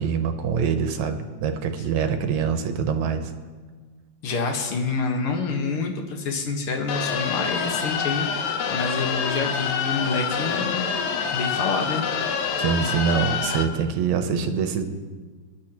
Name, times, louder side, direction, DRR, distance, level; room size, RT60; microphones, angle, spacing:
voice 1, 0.0-3.2 12.6-14.8, right 6 dB, 80° right, 7 dB, 2.2 m, -24 dB
voice 2, 4.2-10.9 11.3-12.0, left 4 dB, 55° left, 2 dB, 2.1 m, -27 dB
sound 1, 6.9-13.6, left 6 dB, 85° left, 2.3 m, -26 dB
22.5 x 10.5 x 3.0 m, 1.4 s
omnidirectional pair, 3.3 m